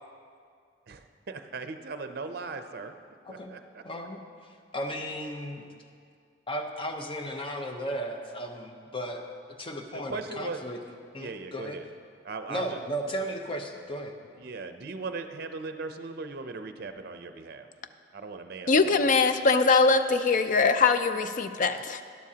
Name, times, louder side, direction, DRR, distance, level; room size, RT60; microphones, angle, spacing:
voice 1, 0.9-2.9 3.3-3.8 9.9-10.6 11.2-11.9 12.2-12.8 14.4-17.7 18.1-19.1 21.5-21.6, right 3 dB, 55° right, 8 dB, 0.5 m, -38 dB
voice 2, 3.2-3.6 3.8-5.6 6.5-9.2 9.6-10.8 11.1-11.8 12.5-14.1, equal, 30° left, 4 dB, 0.8 m, -35 dB
voice 3, 18.7-22.0, left 4 dB, 45° left, 10 dB, 0.4 m, -22 dB
12.5 x 11.0 x 2.8 m, 2.2 s
head